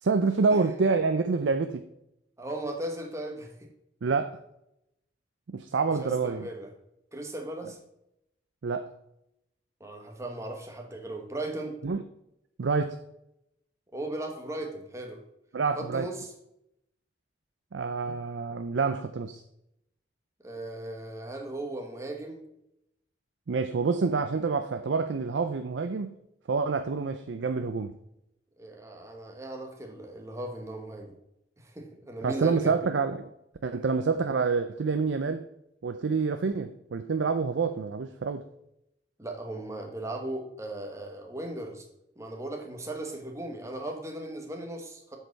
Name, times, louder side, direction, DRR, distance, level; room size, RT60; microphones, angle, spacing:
voice 1, 0.0-1.8 4.0-4.4 5.5-6.5 8.6-8.9 11.8-12.0 12.6-13.0 15.5-16.1 17.7-19.4 23.5-26.1 26.5-27.9 32.2-33.3 33.6-35.4 35.8-38.4, right 4 dB, 80° right, 8 dB, 0.5 m, -27 dB
voice 2, 2.4-3.7 6.0-6.7 7.1-7.8 9.8-11.7 13.9-15.2 15.8-16.3 20.4-22.4 28.6-31.1 31.6-32.8 39.2-41.8 42.2-45.2, right 1 dB, 15° right, 2 dB, 1.4 m, -37 dB
7.9 x 6.6 x 4.1 m, 0.81 s
head